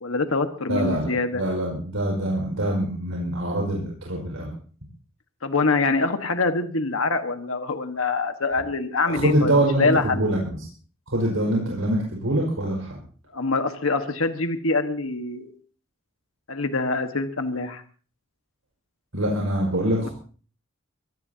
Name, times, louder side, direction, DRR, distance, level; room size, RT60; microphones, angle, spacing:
voice 1, 0.0-1.4 5.4-9.5 9.8-10.2 13.3-15.5 16.5-17.8 20.0-20.1, left 3 dB, 85° left, 7 dB, 1.5 m, -24 dB
voice 2, 0.7-4.5 9.0-10.7 11.1-13.0 19.1-20.1, right 1 dB, 85° right, -1 dB, 5.4 m, -24 dB
24.0 x 18.0 x 2.8 m, 0.42 s
head